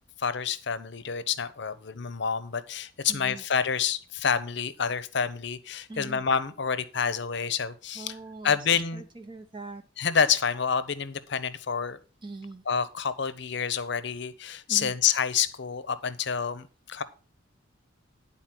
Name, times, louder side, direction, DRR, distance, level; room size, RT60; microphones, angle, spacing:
voice 1, 0.2-8.2 8.4-9.0 10.0-12.0 12.7-17.0, left 7 dB, 60° left, 14 dB, 0.7 m, -28 dB
voice 2, 3.1-3.4 5.9-6.2 8.0-8.6 8.9-9.8 12.2-12.6 14.7-14.9, right 3 dB, 25° right, 6 dB, 0.7 m, -41 dB
10.5 x 4.1 x 5.9 m, 0.37 s
head